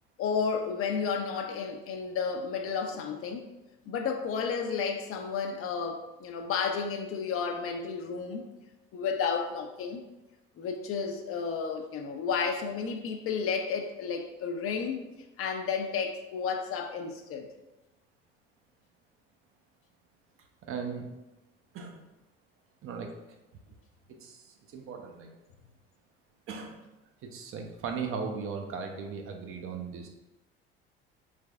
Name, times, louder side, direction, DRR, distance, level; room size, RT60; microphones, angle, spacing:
voice 1, 0.2-3.5 3.9-8.5 8.9-10.0 10.6-15.0 15.4-17.5, left 6 dB, 45° left, 4 dB, 0.5 m, -32 dB
voice 2, 20.6-21.1 21.7-22.0 22.8-23.1 24.1-25.3 26.5-26.8 27.2-30.1, right 5 dB, 45° right, 3 dB, 0.6 m, -37 dB
3.3 x 3.2 x 2.3 m, 1.0 s
hypercardioid pair, 60°, 30 cm